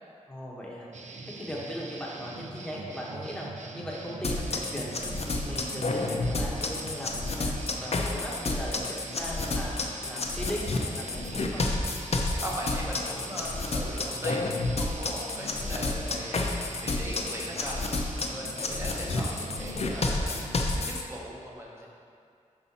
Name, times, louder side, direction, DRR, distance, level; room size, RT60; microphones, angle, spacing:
voice 1, 0.3-0.9 1.3-3.5 3.7-7.5 7.8-9.7 10.0-11.7, equal, 5° left, -5 dB, 1.1 m, -38 dB
sound 1, 0.9-20.9, right 3 dB, 60° right, 0.5 m, -43 dB
sound 2, 4.2-21.0, left 2 dB, 50° left, 0.6 m, -30 dB
voice 2, 12.1-21.9, equal, 20° right, -4 dB, 1.1 m, -39 dB
5.5 x 5.4 x 4.2 m, 2.3 s
wide cardioid pair, 100°, 13 cm